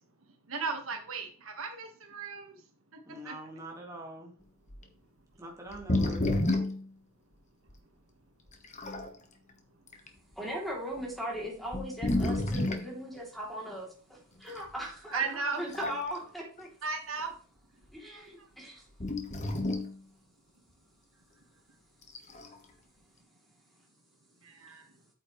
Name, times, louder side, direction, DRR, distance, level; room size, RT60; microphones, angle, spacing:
voice 1, 0.5-2.4 3.2-3.4 15.1-15.6 16.8-17.3 24.6-24.8, right 5 dB, 80° right, 4 dB, 1.7 m, -35 dB
voice 2, 3.1-4.3 5.4-6.6, right 1 dB, 15° right, -1 dB, 1.9 m, -44 dB
sound 1, 4.7-4.8 5.7-6.9 7.7-7.8 8.5-9.1 9.9-10.1 11.0-11.1 11.7-12.9 14.6-14.7 15.5-16.2 16.6-16.7 19.0-20.0 22.0-22.6, left 1 dB, 35° left, 1.3 m, -30 dB
voice 3, 10.4-16.7 17.9-18.8, equal, ahead, -2 dB, 3.2 m, -38 dB
8.8 x 7.6 x 3.2 m, 0.42 s
head